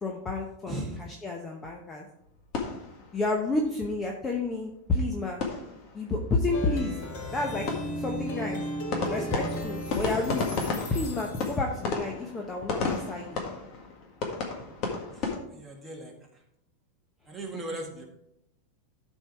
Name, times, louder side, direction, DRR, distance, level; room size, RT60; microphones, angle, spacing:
voice 1, 0.0-2.1 3.1-5.4 5.9-7.0 7.3-7.7 8.0-8.7 9.1-10.5 10.9-13.4, left 3 dB, 15° left, 1 dB, 0.8 m, -30 dB
voice 2, 0.7-1.0 15.2-16.1 17.3-18.0, right 1 dB, 5° right, -2 dB, 1.8 m, -38 dB
sound 1, 2.2-3.7 4.0-4.1 4.4-4.5 4.8-6.2 6.5-6.6 6.9-15.4, left 4 dB, 40° left, 1.7 m, -34 dB
Plucked string instrument, 6.5-11.9, equal, 55° left, 2.1 m, -36 dB
12.5 x 4.5 x 4.5 m, 0.80 s
supercardioid pair, 155°, 0 cm